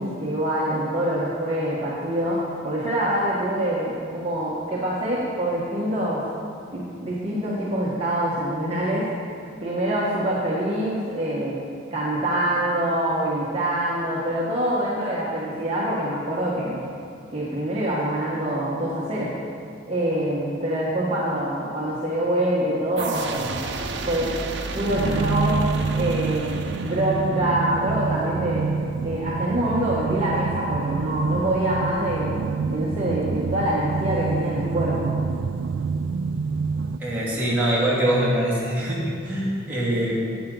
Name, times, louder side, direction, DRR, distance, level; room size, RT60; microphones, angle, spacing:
voice 1, 0.0-6.2 6.7-9.1 9.6-11.5 11.9-16.8 17.3-19.3 19.9-23.6 24.1-24.3 24.7-25.6 25.9-28.7 29.0-32.3 32.7-35.1, right 1 dB, 30° right, -7 dB, 1.4 m, -25 dB
sound 1, 23.0-27.6, right 3 dB, 65° right, 0.8 m, -32 dB
sound 2, 24.9-37.0, right 4 dB, 90° right, 0.3 m, -27 dB
voice 2, 37.0-40.2, right 1 dB, 10° right, -9 dB, 2.8 m, -23 dB
11.0 x 9.0 x 3.9 m, 2.5 s
head